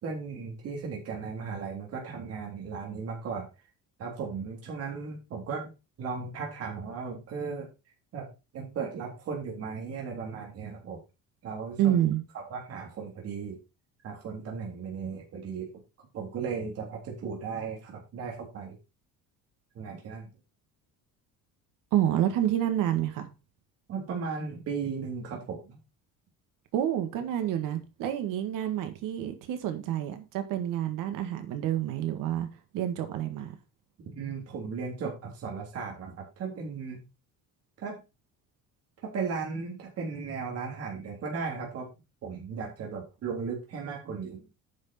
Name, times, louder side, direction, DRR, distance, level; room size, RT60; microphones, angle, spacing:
voice 1, 0.0-3.5 4.0-5.7 6.0-7.7 8.1-8.3 8.5-11.0 11.4-12.0 12.5-13.6 14.0-15.7 16.1-18.8 19.8-20.3 23.9-25.8 34.2-37.0 37.8-38.0 39.0-41.9 42.2-44.4, right 5 dB, 45° right, 3.5 m, -36 dB
voice 2, 11.8-12.2 21.9-23.3 26.7-32.5 32.7-33.5, right 11 dB, 70° right, 1.9 m, -28 dB
9.6 x 6.4 x 4.4 m
cardioid pair, 180°, 34 cm